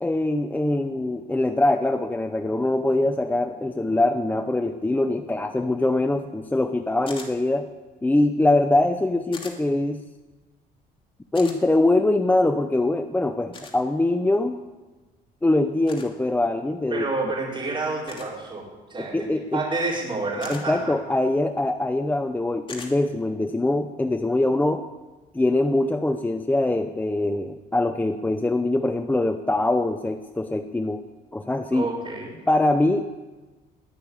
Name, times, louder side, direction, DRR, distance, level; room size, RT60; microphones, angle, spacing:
voice 1, 0.0-7.7 8.0-10.0 11.3-14.6 15.4-17.0 19.0-19.6 20.5-24.8 25.3-31.0 31.3-31.9 32.5-33.1, left 2 dB, 10° left, 8 dB, 0.7 m, -23 dB
sound 1, 7.1-7.3 9.3-9.6 11.3-11.6 13.5-13.8 15.9-16.1 18.1-18.3 20.4-20.6 22.7-22.9, left 4 dB, 30° left, 2.9 m, -39 dB
voice 2, 16.9-20.9 31.7-32.4, right 3 dB, 30° right, -8 dB, 4.7 m, -29 dB
20.5 x 6.8 x 9.5 m, 1.2 s
cardioid pair, 110°, 17 cm